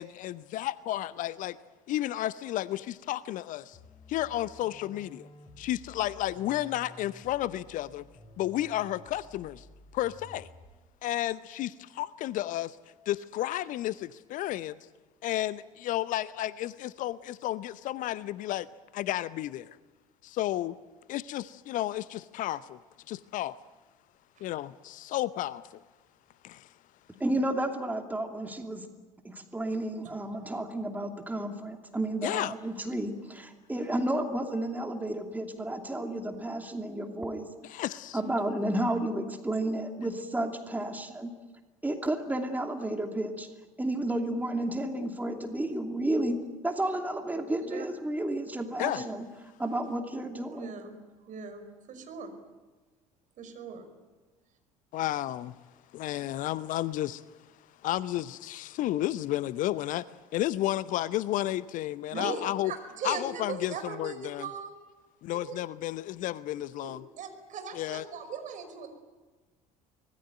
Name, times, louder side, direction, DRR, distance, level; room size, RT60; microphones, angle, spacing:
voice 1, 0.0-1.6 1.9-3.8 4.1-5.3 5.6-8.0 8.4-9.7 9.9-10.5 11.0-12.8 13.1-14.8 15.2-18.7 18.9-19.8 20.2-20.8 21.1-22.8 23.1-23.6 24.4-25.8 26.4-26.7 32.2-32.5 37.6-38.2 48.8-49.0 54.9-55.6 55.9-57.4 57.8-60.1 60.3-62.7 63.0-64.5 65.2-67.0 67.7-68.1, left 14 dB, 45° left, 18 dB, 0.7 m, -32 dB
sound 1, 3.7-10.9, left 1 dB, 30° left, 6.8 m, -53 dB
voice 2, 27.2-28.9 29.2-37.5 38.1-41.3 41.8-43.5 43.8-49.3 49.6-50.7, right 1 dB, 10° right, 4 dB, 2.7 m, -32 dB
voice 3, 30.3-30.6 47.7-47.8 48.9-49.0 50.5-51.0 51.2-52.3 53.4-53.8 62.1-64.8 65.3-65.6 66.6-68.9, right 5 dB, 45° right, 7 dB, 5.4 m, -39 dB
25.0 x 20.0 x 9.3 m, 1.2 s
figure-of-eight pair, 60°, 18 cm